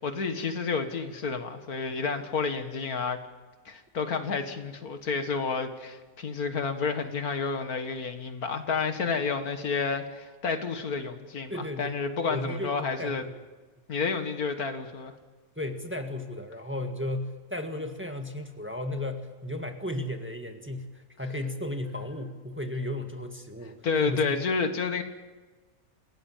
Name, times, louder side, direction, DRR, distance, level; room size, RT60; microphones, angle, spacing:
voice 1, 0.0-3.2 3.7-13.2 13.9-15.1 23.8-25.0, left 5 dB, 85° left, 7 dB, 2.2 m, -30 dB
voice 2, 11.5-12.0 12.3-13.3 15.5-24.4, left 1 dB, 10° right, 4 dB, 1.7 m, -34 dB
27.5 x 16.5 x 7.5 m, 1.3 s
omnidirectional pair, 1.5 m